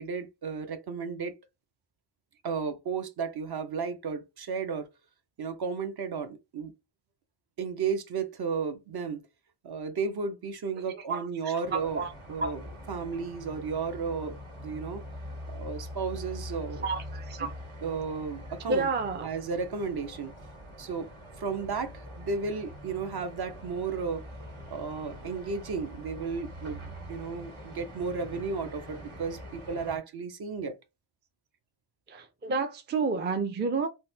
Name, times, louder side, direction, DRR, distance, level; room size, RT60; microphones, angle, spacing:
voice 1, 0.0-1.3 2.4-4.9 5.4-6.7 7.6-9.3 9.6-12.0 12.3-12.6 12.9-15.0 15.5-16.9 17.4-17.5 17.8-18.9 19.2-20.3 20.8-21.1 21.4-24.2 24.7-30.8, right 5 dB, 50° right, 0.8 m, -33 dB
voice 2, 11.1-12.1 12.4-12.5 16.8-17.5 18.7-19.3 32.1-33.9, right 4 dB, 25° right, 0.4 m, -30 dB
sound 1, 11.6-30.0, left 1 dB, 75° right, 2.0 m, -44 dB
3.9 x 2.1 x 2.6 m
wide cardioid pair, 115°, 49 cm